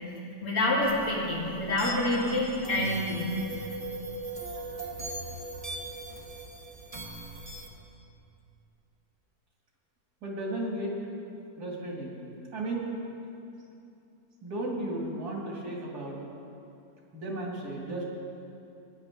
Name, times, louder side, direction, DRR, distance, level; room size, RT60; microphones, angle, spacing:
voice 1, 0.4-3.3, left 1 dB, 65° left, -5 dB, 2.6 m, -27 dB
sound 1, 0.8-7.7, right 2 dB, 25° right, 1.1 m, -40 dB
voice 2, 10.2-11.0 11.6-12.2 12.5-12.8 14.4-16.2 17.1-18.0, right 1 dB, 85° right, -2 dB, 2.5 m, -34 dB
17.0 x 10.0 x 3.6 m, 2.7 s
omnidirectional pair, 1.6 m